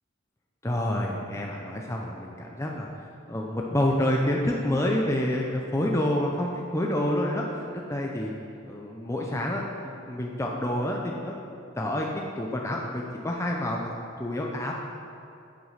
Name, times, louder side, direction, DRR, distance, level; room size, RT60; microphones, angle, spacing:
voice 1, 0.6-2.9 3.3-8.3 8.7-11.4 11.8-14.7, left 1 dB, 15° left, -1 dB, 0.7 m, -28 dB
8.6 x 7.9 x 5.7 m, 2.6 s
head